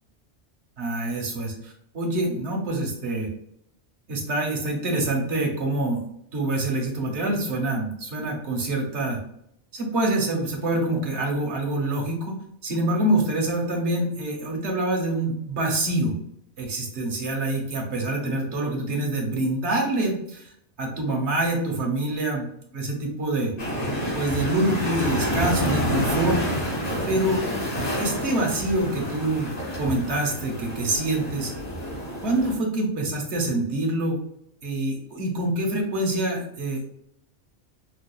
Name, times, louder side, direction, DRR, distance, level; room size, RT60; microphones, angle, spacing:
voice 1, 0.8-3.3 4.1-6.1 6.3-9.2 9.7-12.4 12.6-16.1 16.6-20.5 20.8-22.5 22.7-23.5 24.1-26.4 27.1-27.4 28.0-31.5 32.2-34.2 34.6-36.9, right 1 dB, 80° right, 1 dB, 1.3 m, -26 dB
sound 1, 23.6-32.5, equal, 35° left, 1.3 m, -28 dB
5.2 x 2.4 x 2.3 m, 0.74 s
omnidirectional pair, 1.1 m